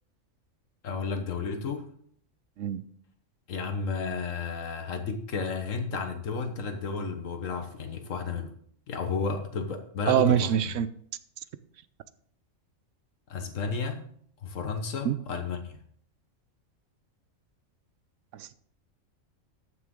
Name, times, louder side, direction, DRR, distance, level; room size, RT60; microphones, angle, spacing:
voice 1, 0.8-1.9 3.5-8.5 8.9-10.5 13.3-14.1 14.4-15.8, left 4 dB, 75° left, 1.5 m, -32 dB
voice 2, 10.1-10.9 15.0-15.2 18.3-18.5, right 10 dB, 75° right, 0.9 m, -24 dB
14.0 x 6.2 x 3.7 m
omnidirectional pair, 1.4 m